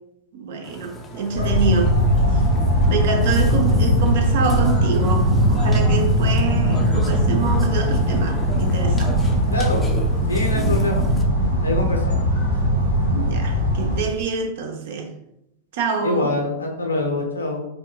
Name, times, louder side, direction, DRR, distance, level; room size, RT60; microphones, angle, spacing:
voice 1, 0.3-2.0 2.3-2.4 2.9-9.3 10.5-10.8 13.1-15.1 15.7-16.3, right 5 dB, 55° right, 0.6 m, -26 dB
Burping eructation, 0.6-11.2, left 1 dB, 15° left, 0.5 m, -36 dB
sound 1, 1.3-14.0, equal, 90° right, 0.9 m, -19 dB
voice 2, 10.3-11.0 11.6-12.2 16.0-17.7, left 2 dB, 80° left, 0.7 m, -24 dB
4.8 x 2.1 x 2.4 m
figure-of-eight pair, 90°, 0 cm